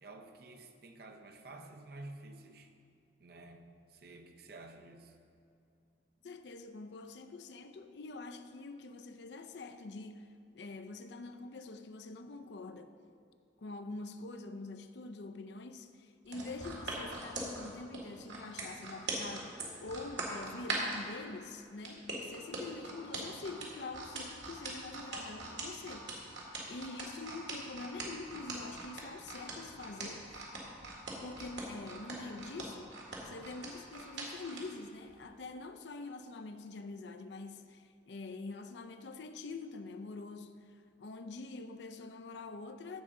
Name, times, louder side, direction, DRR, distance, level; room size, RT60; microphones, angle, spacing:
voice 1, 0.0-2.7 3.2-5.1, right 2 dB, 60° right, 0.7 m, -51 dB
voice 2, 6.2-13.0 13.6-26.3 26.7-30.4 31.1-33.0 33.2-43.0, left 3 dB, 70° left, 0.5 m, -45 dB
sound 1, 16.3-21.0 21.8-34.6 35.1-35.2, right 3 dB, 80° right, 1.9 m, -41 dB
15.0 x 5.7 x 3.7 m
head